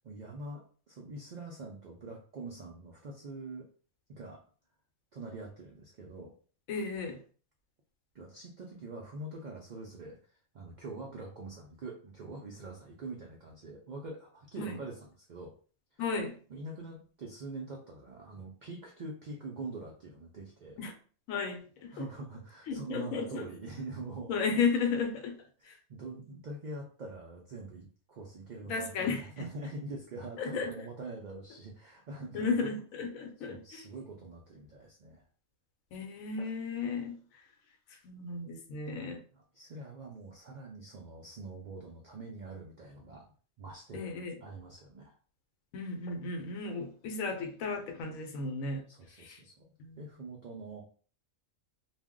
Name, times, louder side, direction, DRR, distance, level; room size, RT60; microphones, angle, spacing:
voice 1, 0.0-3.7 4.1-4.4 5.1-6.3 8.1-15.5 16.5-20.8 21.9-24.3 25.6-32.5 33.4-35.2 39.3-43.3 43.6-44.1 44.4-45.2 48.9-50.8, right 2 dB, 80° right, 0.4 m, -44 dB
voice 2, 6.7-7.2 14.6-14.8 16.0-16.4 20.8-20.9 21.3-22.0 22.7-23.5 24.3-25.4 25.6-25.8 28.7-29.5 30.4-30.7 32.3-33.8 35.9-37.2 38.0-39.2 43.9-44.4 45.7-48.8 49.2-49.4 49.8-50.0, left 4 dB, 85° left, 1.0 m, -34 dB
2.4 x 2.0 x 3.6 m
omnidirectional pair, 1.4 m